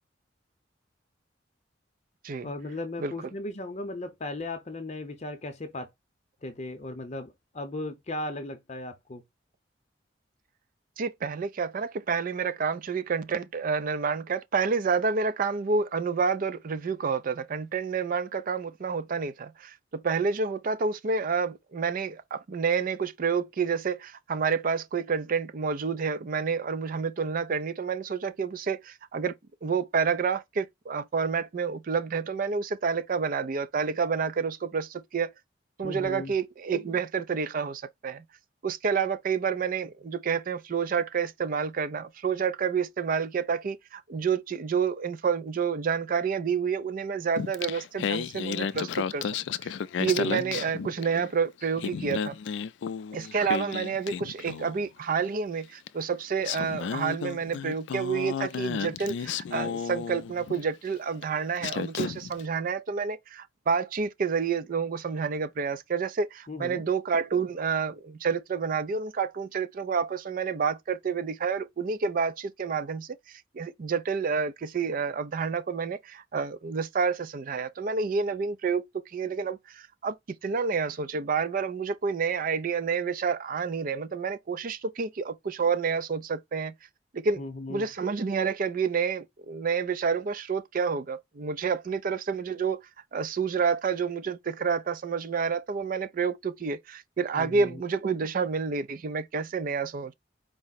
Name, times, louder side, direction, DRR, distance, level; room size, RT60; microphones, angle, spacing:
voice 1, 2.4-5.9 6.4-9.2 35.8-36.3 50.1-50.6 66.5-66.8 87.4-87.9 97.3-97.8, left 2 dB, 40° left, 0.6 m, -37 dB
voice 2, 11.0-29.4 29.6-35.3 35.8-38.2 38.6-49.3 49.6-49.7 50.0-52.4 53.1-86.7 87.1-87.4 87.7-92.8 93.1-100.1, right 5 dB, 50° right, 0.4 m, -29 dB
Singing, 47.4-51.3 51.6-54.8 55.9-56.0 56.4-60.6 61.2-61.3 61.6-62.4, left 7 dB, 70° left, 0.3 m, -33 dB
4.6 x 2.0 x 4.0 m
head